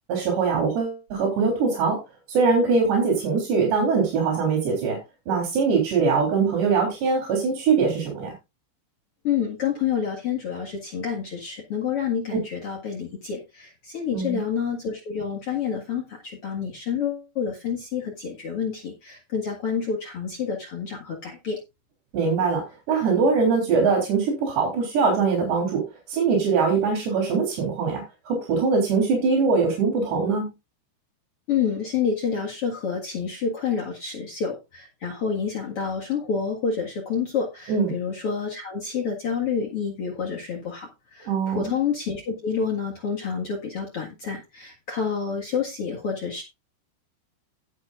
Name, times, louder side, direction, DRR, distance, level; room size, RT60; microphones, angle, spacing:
voice 1, 0.1-2.0 2.3-5.0 5.3-8.3 14.1-14.4 22.1-25.8 26.1-30.5 37.7-37.9 41.3-41.8, right 5 dB, 60° right, 0 dB, 5.4 m, -22 dB
voice 2, 9.2-21.6 31.5-46.4, left 6 dB, 75° left, -1 dB, 1.3 m, -28 dB
17.5 x 7.5 x 2.5 m, 0.24 s
omnidirectional pair, 5.7 m